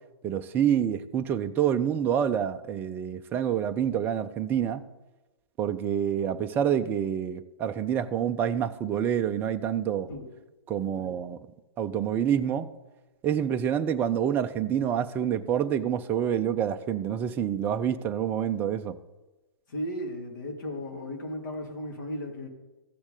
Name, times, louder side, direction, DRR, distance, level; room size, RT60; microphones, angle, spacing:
voice 1, 0.2-4.8 5.6-10.1 10.7-11.4 11.8-12.7 13.2-18.9, right 9 dB, 15° right, 0.4 m, -27 dB
voice 2, 19.7-22.5, left 1 dB, 50° left, 2.2 m, -35 dB
15.0 x 6.1 x 3.8 m
figure-of-eight pair, 120°, 13 cm